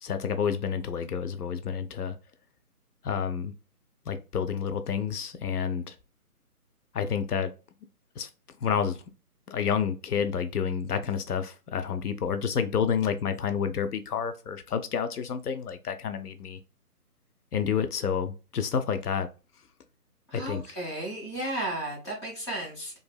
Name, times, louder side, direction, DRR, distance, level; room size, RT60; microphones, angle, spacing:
voice 1, 0.0-2.1 3.0-3.5 4.1-6.0 6.9-7.5 8.2-8.3 8.6-9.0 9.5-16.6 17.5-19.3 20.3-20.6, left 7 dB, 75° left, 0.6 m, -29 dB
voice 2, 20.3-23.0, right 1 dB, 20° left, 0.7 m, -34 dB
2.8 x 2.5 x 2.3 m
figure-of-eight pair, 155°, 46 cm